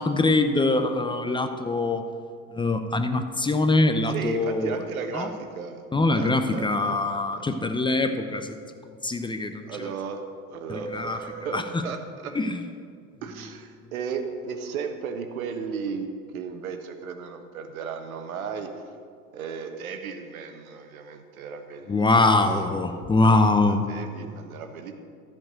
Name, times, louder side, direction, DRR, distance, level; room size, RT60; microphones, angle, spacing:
voice 1, 0.0-2.0 2.5-4.8 5.1-5.3 5.9-8.5 9.0-9.7 10.9-11.2 11.5-11.8 12.3-12.6 21.9-23.8, left 2 dB, 10° left, 7 dB, 0.7 m, -23 dB
voice 2, 4.1-5.8 6.1-7.5 9.6-10.2 10.5-12.3 13.2-18.7 19.3-22.4 22.6-24.9, right 6 dB, 80° right, 7 dB, 1.3 m, -35 dB
14.0 x 5.2 x 7.7 m, 2.2 s
hypercardioid pair, 90°, 42 cm